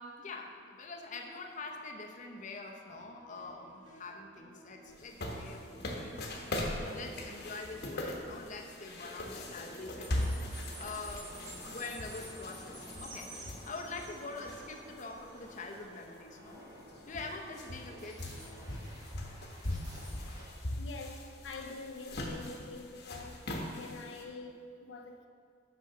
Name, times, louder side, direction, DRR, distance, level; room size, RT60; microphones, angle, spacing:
voice 1, 0.0-10.3 10.8-11.4 11.7-16.6 17.1-18.3, left 3 dB, 45° left, 2 dB, 0.7 m, -45 dB
sound 1, 2.9-18.8, right 1 dB, 80° right, 1.5 m, -57 dB
sound 2, 5.0-15.0 15.5-15.6 16.5-16.6 16.8-24.2, left 1 dB, 60° left, 1.1 m, -40 dB
sound 3, 10.0-20.5, right 1 dB, 20° right, 1.5 m, -51 dB
voice 2, 20.8-25.3, left 3 dB, 85° left, 3 dB, 0.6 m, -46 dB
6.6 x 5.3 x 6.5 m, 2.3 s
head